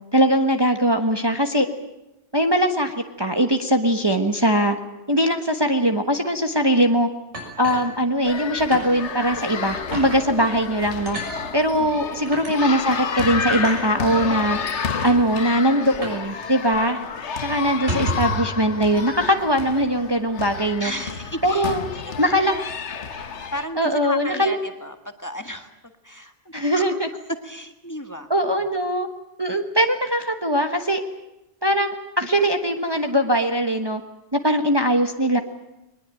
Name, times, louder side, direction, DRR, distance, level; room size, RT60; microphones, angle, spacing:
voice 1, 0.1-1.7 2.3-4.8 5.1-7.1 7.6-11.2 11.5-17.0 17.4-20.9 21.4-21.8 22.2-22.5 23.8-24.5 26.5-27.1 28.3-29.1 29.4-31.0 31.6-34.0 34.3-35.4, equal, 20° right, 5 dB, 1.3 m, -21 dB
sound 1, 7.3-8.4 8.7-8.9 9.3-9.4 9.9-10.2 11.1-11.3 12.3-12.5 13.5-13.8 14.6-14.7 14.9-15.2 16.0-16.3 16.5-16.6 17.0-17.2 17.7-18.5, equal, 75° right, 7.0 m, -30 dB
sound 2, 8.2-23.7, left 6 dB, 75° left, 1.5 m, -30 dB
voice 2, 20.8-22.1 22.5-22.6 23.5-26.3 26.7-27.0 27.4-28.3, equal, 15° left, 6 dB, 1.6 m, -34 dB
22.0 x 20.5 x 9.1 m, 0.94 s
omnidirectional pair, 1.2 m